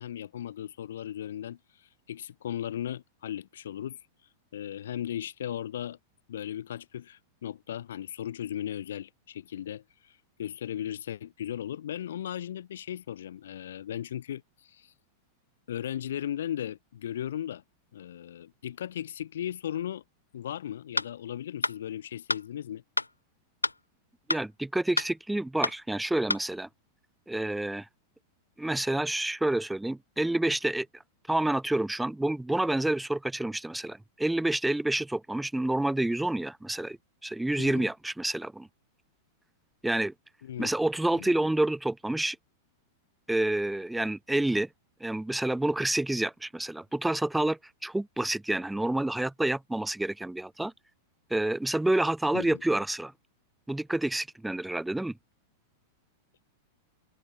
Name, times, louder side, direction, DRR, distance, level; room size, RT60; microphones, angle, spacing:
voice 1, 0.0-4.0 4.5-6.0 6.3-14.9 15.7-17.6 17.9-20.0 20.3-22.8 37.6-37.9 40.4-40.7 41.2-41.4 52.3-52.6, left 10 dB, 65° left, 7.4 m, -37 dB
sound 1, 21.0-21.1 21.6-21.8 22.3-22.4 23.0-23.1 23.6-23.8 24.3-24.4 25.0-25.1 25.6-25.8 26.3-26.4, left 2 dB, 85° left, 0.7 m, -28 dB
voice 2, 24.3-26.7 27.3-27.8 28.6-30.9 31.3-38.7 39.8-40.1 40.6-42.4 43.3-44.7 45.0-50.7 51.3-53.1 53.7-55.1, right 1 dB, 5° right, 1.5 m, -28 dB
figure-of-eight pair, 95°, 0 cm